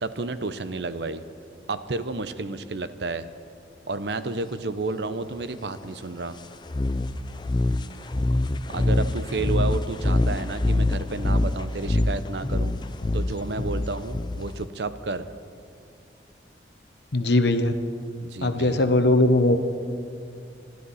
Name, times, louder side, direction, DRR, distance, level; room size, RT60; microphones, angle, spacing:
voice 1, 0.0-1.2 1.7-3.3 3.9-6.4 8.7-12.7 13.1-15.3 18.2-18.9, right 3 dB, 75° right, 12 dB, 0.8 m, -31 dB
sound 1, 6.7-14.7, left 2 dB, 25° left, 0.4 m, -25 dB
voice 2, 17.1-17.7 18.4-19.6, left 2 dB, 75° left, 8 dB, 1.1 m, -20 dB
27.5 x 12.5 x 4.2 m, 2.4 s
head